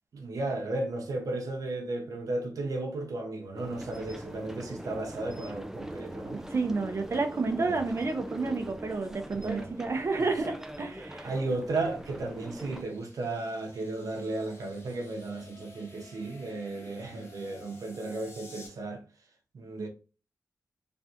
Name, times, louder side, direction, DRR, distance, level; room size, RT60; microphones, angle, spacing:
voice 1, 0.1-6.4 7.6-7.8 9.3-9.7 10.2-10.3 11.2-19.0 19.5-19.9, right 2 dB, 80° right, 0.8 m, -34 dB
sound 1, 3.6-12.8, right 1 dB, 5° right, 0.5 m, -42 dB
voice 2, 6.3-11.3, right 3 dB, 50° right, 0.7 m, -30 dB
sound 2, 10.7-18.7, left 1 dB, 45° left, 1.4 m, -52 dB
3.4 x 3.2 x 2.8 m
cardioid pair, 65°, 6 cm